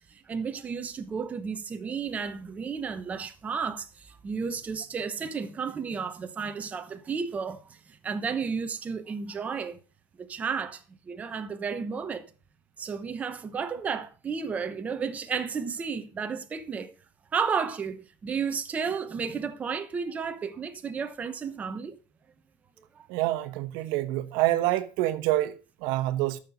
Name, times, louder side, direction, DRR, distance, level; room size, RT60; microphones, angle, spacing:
voice 1, 0.1-9.8 10.2-12.3 12.8-16.9 17.3-21.9 22.8-23.1, right 6 dB, 20° right, 1.0 m, -33 dB
voice 2, 23.1-26.4, right 15 dB, 70° right, 1.2 m, -27 dB
13.5 x 6.6 x 5.7 m
cardioid pair, 170°, 8 cm